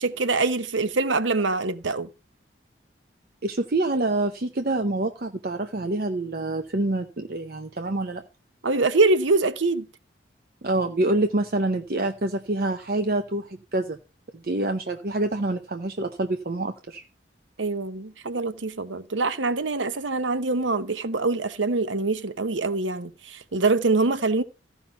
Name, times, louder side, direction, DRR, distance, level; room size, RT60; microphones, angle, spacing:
voice 1, 0.0-2.1 8.6-9.9 17.6-24.4, right 3 dB, 85° right, 0.9 m, -24 dB
voice 2, 3.4-8.2 10.6-14.0 14.3-17.0, right 2 dB, 50° right, 0.7 m, -26 dB
14.5 x 5.5 x 5.5 m
head